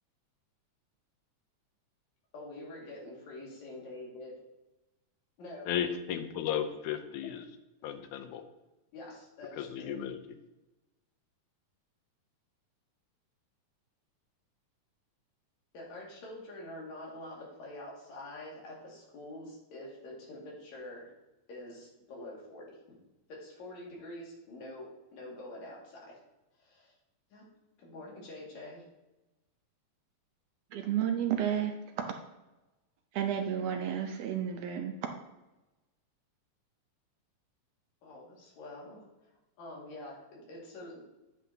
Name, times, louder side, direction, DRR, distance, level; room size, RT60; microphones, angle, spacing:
voice 1, 2.3-4.3 5.4-5.7 8.9-9.9 15.7-21.1 21.5-23.0 23.3-26.2 26.6-26.9 27.3-27.5 27.8-28.8 38.0-39.3 39.6-41.0, left 1 dB, 70° left, -4 dB, 3.4 m, -46 dB
voice 2, 5.7-7.5 7.8-8.4 9.6-10.2, left 9 dB, 90° left, 8 dB, 2.1 m, -34 dB
voice 3, 30.7-31.7 33.1-34.9, right 9 dB, 75° right, 4 dB, 1.5 m, -31 dB
9.1 x 8.0 x 2.8 m, 1.0 s
omnidirectional pair, 3.4 m